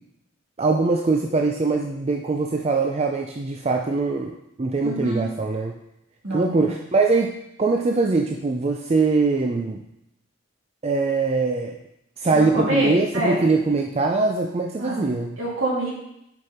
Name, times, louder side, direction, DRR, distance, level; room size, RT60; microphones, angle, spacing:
voice 1, 0.6-4.3 4.6-5.8 6.3-9.8 10.8-11.7 12.2-15.4, right 3 dB, 30° right, 2 dB, 0.4 m, -22 dB
voice 2, 4.8-5.2 6.2-6.5 12.3-13.5 14.8-15.9, right 1 dB, 70° right, -6 dB, 2.9 m, -26 dB
6.6 x 5.3 x 4.3 m, 0.81 s
head